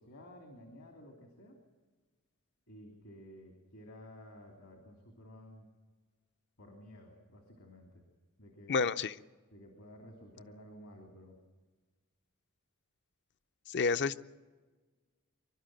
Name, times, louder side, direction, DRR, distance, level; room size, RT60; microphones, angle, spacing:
voice 1, 0.0-1.6 2.7-5.7 6.6-8.0 8.4-8.8 9.5-11.4, equal, 70° left, 3 dB, 3.0 m, -53 dB
voice 2, 8.7-9.2 13.7-14.2, left 4 dB, 55° left, 13 dB, 0.6 m, -30 dB
25.0 x 12.0 x 9.1 m, 1.3 s
head